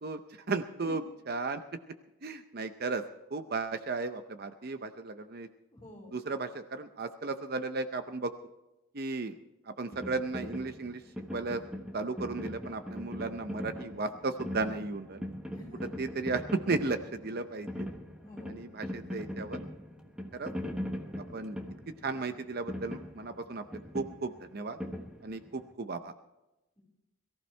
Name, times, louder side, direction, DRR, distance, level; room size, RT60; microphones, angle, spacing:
voice 1, 0.0-1.0 1.3-1.6 2.2-3.0 3.3-5.5 6.1-8.3 8.9-9.4 9.7-11.0 11.3-11.6 11.9-15.3 16.0-17.9 18.5-19.6 20.3-20.5 21.2-21.6 22.0-24.8 25.2-26.1, right 3 dB, 45° right, 9 dB, 0.6 m, -35 dB
voice 2, 5.7-6.2 15.5-16.0 18.2-18.6, left 1 dB, 20° left, -3 dB, 5.5 m, -48 dB
sound 1, 9.9-25.7, equal, 5° right, 1.3 m, -41 dB
22.5 x 15.0 x 3.3 m, 0.97 s
head